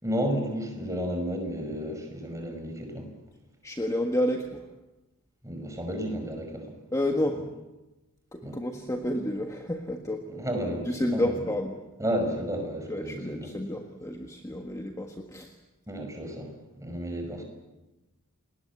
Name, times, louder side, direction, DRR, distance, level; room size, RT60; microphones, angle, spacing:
voice 1, 0.0-3.1 5.4-6.8 7.2-7.4 8.4-8.8 10.3-11.5 12.0-13.5 15.9-17.4, equal, 15° right, 4 dB, 5.6 m, -32 dB
voice 2, 3.6-4.7 6.9-7.5 8.3-10.3 10.8-11.8 12.9-15.6, left 1 dB, 15° left, 3 dB, 1.5 m, -30 dB
29.0 x 20.0 x 8.4 m, 1.1 s
head